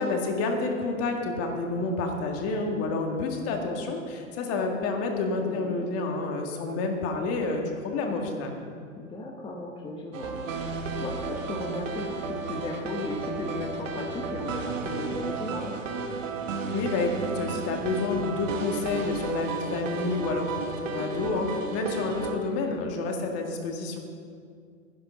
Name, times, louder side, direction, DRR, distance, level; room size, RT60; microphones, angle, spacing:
voice 1, 0.0-8.5 16.7-24.0, left 3 dB, 35° left, 2 dB, 2.0 m, -29 dB
voice 2, 5.4-5.8 9.0-15.7, left 2 dB, 15° left, -1 dB, 1.1 m, -36 dB
sound 1, 10.1-22.4, right 4 dB, 70° right, 1.5 m, -33 dB
10.5 x 10.5 x 6.0 m, 2.2 s
hypercardioid pair, 110°, 40 cm